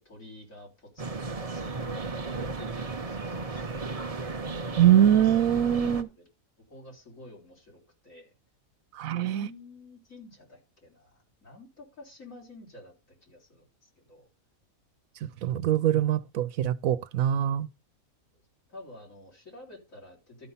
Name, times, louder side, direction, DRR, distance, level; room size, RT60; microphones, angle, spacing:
voice 1, 0.0-4.1 5.8-6.2 6.7-8.3 9.0-14.3 18.3-18.4 18.7-20.5, left 2 dB, 75° left, 4.0 m, -50 dB
sound 1, 1.0-6.0, right 3 dB, 30° right, 0.8 m, -34 dB
voice 2, 4.8-6.1 8.9-9.5 15.4-17.7, right 10 dB, 80° right, 1.1 m, -23 dB
12.0 x 5.4 x 5.6 m
omnidirectional pair, 1.4 m